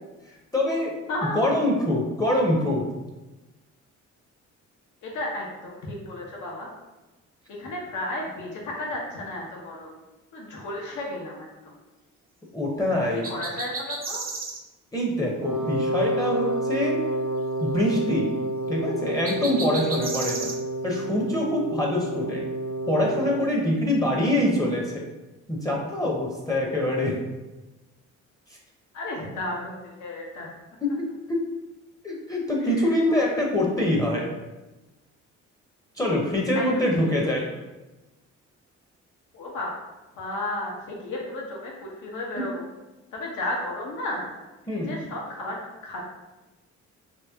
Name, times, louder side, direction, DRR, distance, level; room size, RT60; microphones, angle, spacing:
voice 1, 0.5-0.9 1.2-2.9 12.5-13.4 14.9-17.0 17.6-18.3 18.7-20.5 20.8-22.4 22.9-25.1 25.5-27.2 30.8-31.4 32.0-34.3 36.0-37.5 44.7-44.9, left 1 dB, 10° left, -2 dB, 0.7 m, -24 dB
voice 2, 1.1-1.4 5.0-6.7 7.6-10.0 10.3-11.8 13.3-14.2 28.9-30.5 32.6-33.2 36.5-36.8 39.3-39.7 40.2-42.7 43.1-44.3 44.7-45.6 45.8-46.0, left 1 dB, 75° left, -2 dB, 1.0 m, -33 dB
sound 1, 13.2-14.6 19.2-20.6, right 3 dB, 30° right, 0.5 m, -33 dB
Wind instrument woodwind instrument, 15.4-23.5, right 1 dB, 80° right, 0.7 m, -29 dB
2.9 x 2.8 x 3.4 m, 1.1 s
cardioid pair, 90°, 30 cm